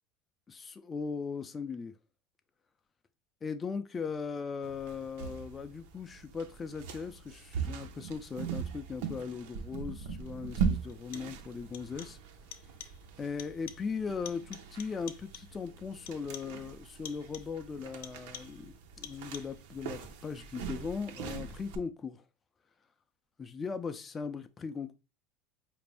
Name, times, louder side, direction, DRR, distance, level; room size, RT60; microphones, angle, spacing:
voice 1, 0.5-1.9 3.4-12.2 13.2-22.2 23.4-24.9, left 5 dB, 20° left, 0.3 m, -38 dB
sound 1, 4.6-21.8, right 6 dB, 80° right, 0.6 m, -40 dB
sound 2, 9.8-9.9 10.9-11.5 11.7-12.3 12.5-13.1 13.4-14.0 14.2-15.6 16.1-16.6 17.0-17.6 18.0-18.7 19.0-19.7, left 11 dB, 85° left, 0.5 m, -49 dB
4.9 x 2.5 x 3.3 m
cardioid pair, 155°, 0 cm